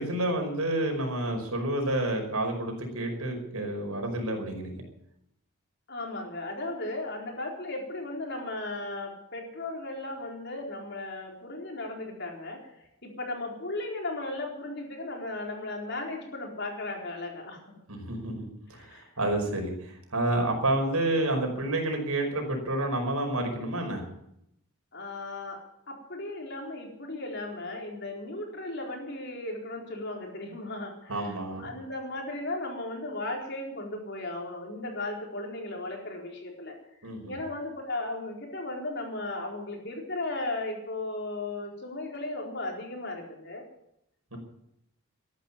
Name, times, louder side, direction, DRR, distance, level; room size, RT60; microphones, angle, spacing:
voice 1, 0.0-4.8 17.9-24.0 31.1-31.7 37.0-37.4 44.3-44.4, right 1 dB, 85° right, 3 dB, 5.3 m, -29 dB
voice 2, 5.9-12.8 13.0-17.8 18.7-19.1 24.9-43.6, left 2 dB, 50° left, 1 dB, 4.3 m, -36 dB
13.5 x 11.5 x 8.8 m, 0.78 s
head